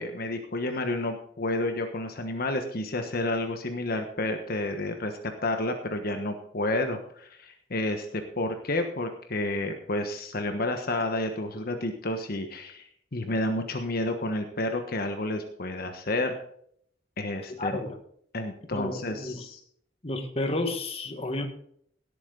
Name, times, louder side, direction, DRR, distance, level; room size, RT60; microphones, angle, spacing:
voice 1, 0.0-5.1 5.4-12.8 13.1-16.3 17.2-17.8 18.3-19.6, left 2 dB, 55° left, 5 dB, 1.3 m, -30 dB
voice 2, 17.6-17.9 18.7-19.4 20.0-21.5, left 2 dB, 30° left, 6 dB, 1.6 m, -31 dB
18.0 x 8.4 x 4.0 m, 0.64 s
head